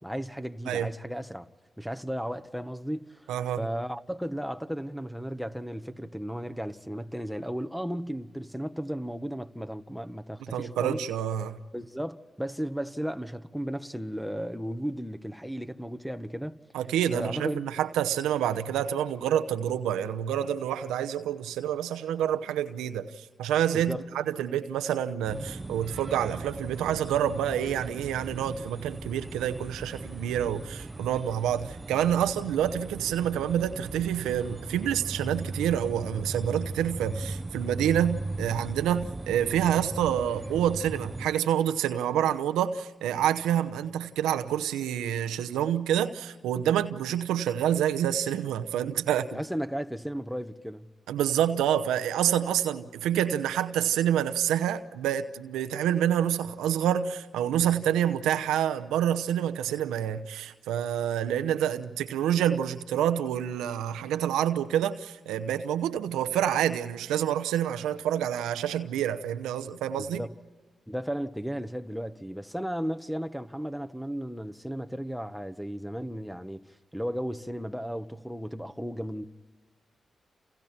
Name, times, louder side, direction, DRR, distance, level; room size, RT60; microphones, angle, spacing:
voice 1, 0.0-1.5 1.8-3.3 3.6-11.0 11.7-16.6 17.1-17.6 23.7-24.0 49.3-50.9 70.0-70.4 70.9-76.6 76.9-79.3, equal, ahead, 1.4 m, -35 dB
voice 2, 3.3-3.6 10.5-11.6 16.7-49.4 51.1-70.2, right 10 dB, 90° right, 0.8 m, -27 dB
sound 1, 25.2-41.3, right 2 dB, 30° right, 0.9 m, -38 dB
29.0 x 29.0 x 4.4 m
supercardioid pair, 40°, 0 cm